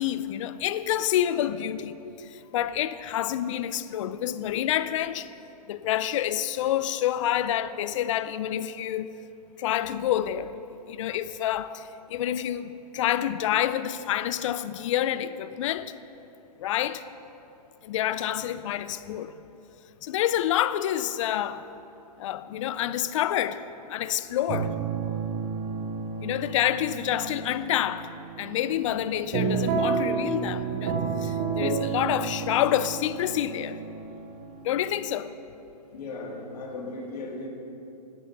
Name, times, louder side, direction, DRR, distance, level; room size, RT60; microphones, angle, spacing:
voice 1, 0.0-5.3 5.7-9.1 9.6-10.5 10.9-15.9 16.6-17.0 17.8-19.4 20.0-21.6 22.2-23.6 23.9-24.7 26.2-33.8 34.6-35.3, left 11 dB, 50° left, 0.5 m, -28 dB
sound 1, 24.5-35.1, right 6 dB, 30° right, 1.0 m, -31 dB
voice 2, 35.9-37.5, left 2 dB, 70° left, 2.3 m, -36 dB
10.5 x 8.4 x 5.9 m
hypercardioid pair, 140°, 21 cm